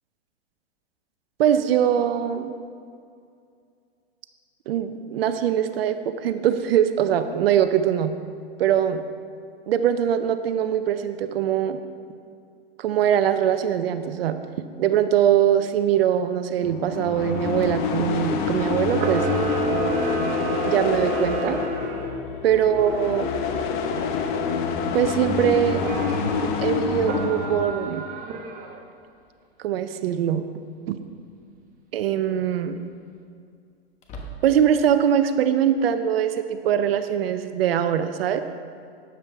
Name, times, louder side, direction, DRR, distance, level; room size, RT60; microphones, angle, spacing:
voice 1, 1.4-2.5 4.7-8.1 8.6-9.0 9.7-11.8 12.8-14.4 14.8-19.3 20.6-21.6 22.4-23.3 24.9-25.9 26.6-28.0 29.6-30.4 30.9-31.0 31.9-32.8 34.4-38.4, right 9 dB, 65° right, 10 dB, 0.7 m, -22 dB
sound 1, 16.6-27.7, left 5 dB, 50° left, 1.1 m, -27 dB
Camera, 18.9-22.2 25.7-26.5 27.0-28.8, right 5 dB, 25° right, 1.0 m, -30 dB
sound 2, 31.4-31.7 32.1-32.2 34.0-34.9, right 1 dB, 20° left, 1.3 m, -40 dB
12.5 x 10.0 x 3.5 m, 2.3 s
hypercardioid pair, 130°, 32 cm